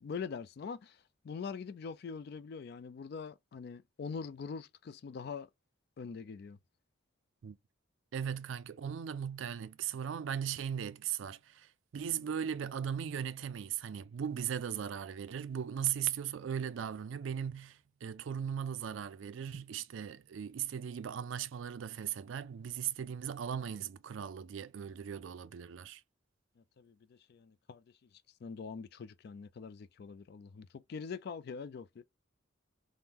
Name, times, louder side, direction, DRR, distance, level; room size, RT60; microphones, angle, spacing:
voice 1, 0.0-5.5 6.0-6.6 26.6-27.8 28.4-32.0, left 5 dB, 55° left, 0.3 m, -43 dB
voice 2, 8.1-26.0, right 8 dB, 70° right, 0.4 m, -38 dB
3.5 x 2.1 x 2.8 m
head